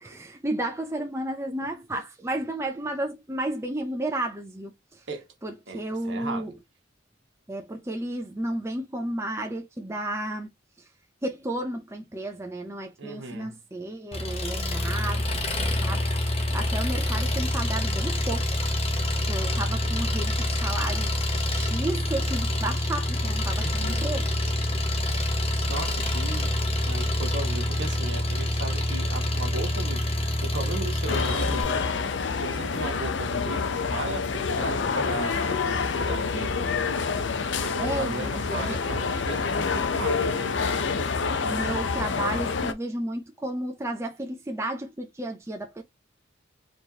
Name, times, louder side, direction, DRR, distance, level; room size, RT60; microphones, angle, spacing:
voice 1, 0.0-5.0 5.4-6.5 7.5-10.5 11.2-16.1 16.3-18.7 19.3-21.1 21.5-24.3 37.5-38.8 41.4-45.8, right 1 dB, 15° right, 0.6 m, -32 dB
voice 2, 5.7-6.6 13.0-13.6 23.6-24.1 25.7-26.5 26.9-30.1 30.4-36.7 37.6-40.6, right 2 dB, 65° right, 1.2 m, -36 dB
Engine, 14.1-31.6, left 1 dB, 30° left, 0.9 m, -26 dB
sound 1, 31.1-42.7, left 5 dB, 70° left, 0.6 m, -27 dB
4.4 x 3.1 x 2.8 m
head